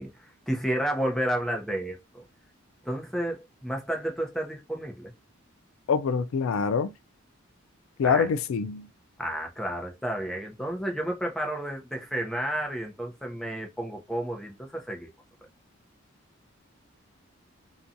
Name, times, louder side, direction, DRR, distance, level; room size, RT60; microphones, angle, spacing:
voice 1, 0.0-2.0 2.8-5.1 8.0-8.3 9.2-15.1, right 1 dB, ahead, 0.6 m, -31 dB
voice 2, 5.9-6.9 8.0-8.9, left 6 dB, 80° left, 0.3 m, -25 dB
2.7 x 2.2 x 2.5 m
head